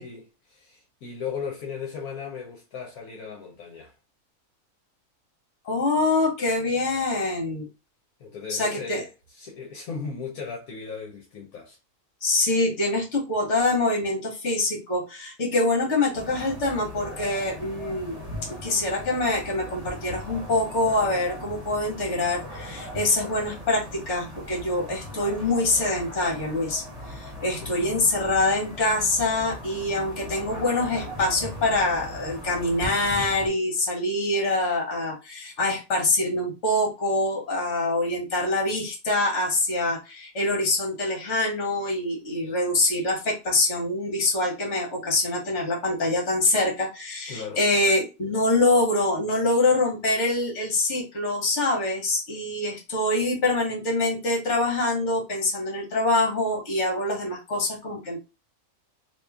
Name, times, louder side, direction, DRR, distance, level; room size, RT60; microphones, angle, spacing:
voice 1, 0.0-3.9 8.2-11.8 27.6-28.0 47.3-47.6, left 5 dB, 75° left, 1.2 m, -37 dB
voice 2, 5.6-7.7 8.5-9.0 12.2-18.2 18.5-58.2, left 2 dB, 55° left, 1.6 m, -25 dB
sound 1, 16.1-33.5, left 1 dB, 30° right, 1.0 m, -39 dB
3.0 x 2.7 x 3.5 m
omnidirectional pair, 1.6 m